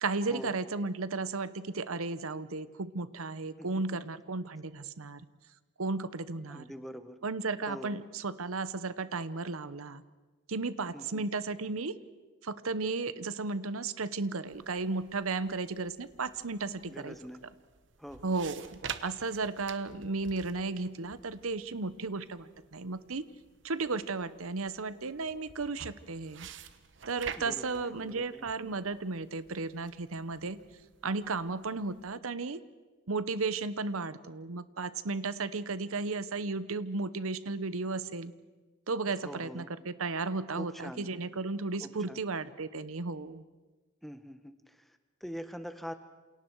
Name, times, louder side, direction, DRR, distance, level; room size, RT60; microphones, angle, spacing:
voice 1, 0.0-5.3 5.8-6.6 7.2-10.0 10.5-12.0 12.4-17.1 18.2-18.7 19.0-23.2 23.6-26.5 27.1-30.6 31.0-32.6 33.1-38.3 38.9-43.4, right 3 dB, 90° right, 14 dB, 0.9 m, -34 dB
voice 2, 6.5-7.2 7.7-8.0 10.9-11.3 16.9-17.4 18.0-18.4 27.4-28.5 39.2-39.7 40.5-41.1 41.8-42.2 44.0-45.9, equal, ahead, 9 dB, 1.1 m, -44 dB
sound 1, 14.5-32.2, right 7 dB, 60° right, 1.0 m, -49 dB
28.0 x 28.0 x 4.7 m, 1.2 s
head